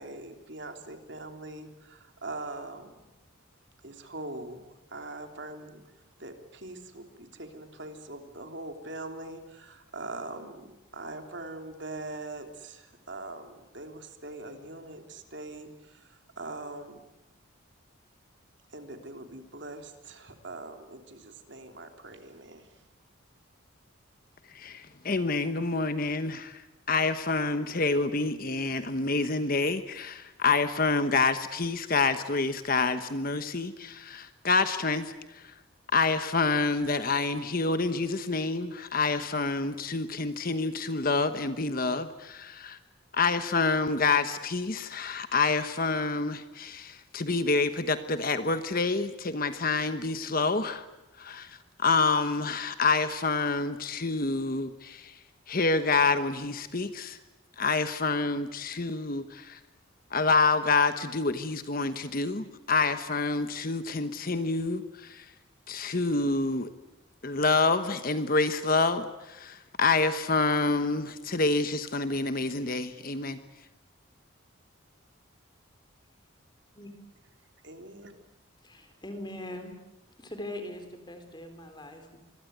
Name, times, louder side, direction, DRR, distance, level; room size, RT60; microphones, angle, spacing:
voice 1, 0.0-3.1 3.8-5.8 6.2-10.7 10.9-17.0 18.7-22.8 77.6-78.1, right 2 dB, 55° right, 5 dB, 3.3 m, -42 dB
voice 2, 24.5-35.5 35.9-42.8 43.1-50.9 51.2-55.2 55.5-57.2 57.6-59.6 60.1-65.3 65.7-66.7 67.2-73.4, left 3 dB, 45° left, 10 dB, 1.1 m, -27 dB
voice 3, 78.6-79.7 80.2-82.2, left 1 dB, 20° left, 7 dB, 4.1 m, -41 dB
26.0 x 22.0 x 9.4 m, 0.99 s
head